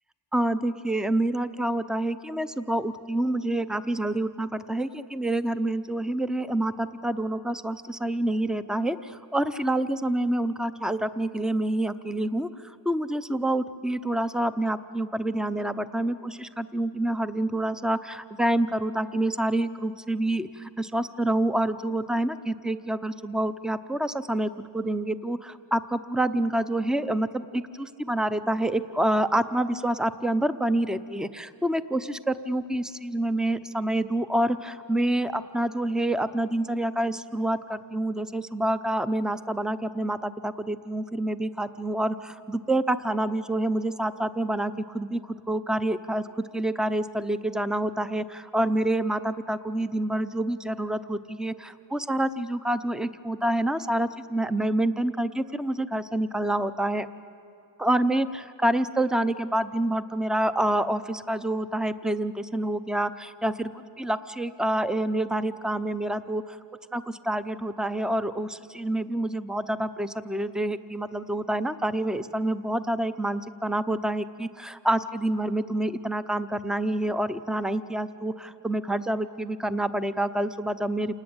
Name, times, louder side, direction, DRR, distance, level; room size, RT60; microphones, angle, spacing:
voice 1, 0.3-46.3 46.5-57.1 57.8-63.7 64.0-66.6 66.9-81.2, right 1 dB, ahead, 12 dB, 0.6 m, -27 dB
28.0 x 19.5 x 8.9 m, 2.9 s
wide cardioid pair, 130°, 46 cm